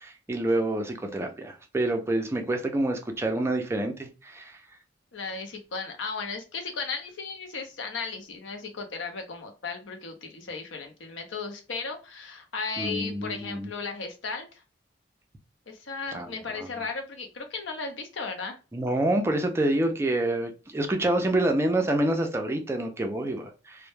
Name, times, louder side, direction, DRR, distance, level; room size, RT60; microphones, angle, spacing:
voice 1, 0.0-4.5 12.8-13.7 16.1-16.7 18.7-23.9, right 1 dB, 15° right, 4 dB, 0.3 m, -27 dB
voice 2, 5.1-14.6 15.7-18.6, left 4 dB, 80° left, 4 dB, 0.6 m, -35 dB
2.1 x 2.0 x 3.1 m, 0.32 s
head